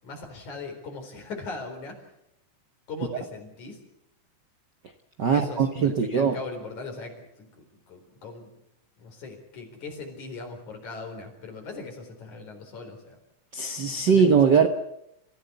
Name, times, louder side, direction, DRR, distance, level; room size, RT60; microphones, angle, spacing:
voice 1, 0.0-2.0 2.9-3.8 5.2-8.5 9.0-13.2 14.0-14.2 14.5-14.6, left 3 dB, 70° left, 4 dB, 5.6 m, -39 dB
voice 2, 5.2-6.4 13.5-14.7, right 6 dB, 60° right, 6 dB, 1.2 m, -21 dB
27.0 x 15.5 x 8.2 m, 0.80 s
omnidirectional pair, 3.5 m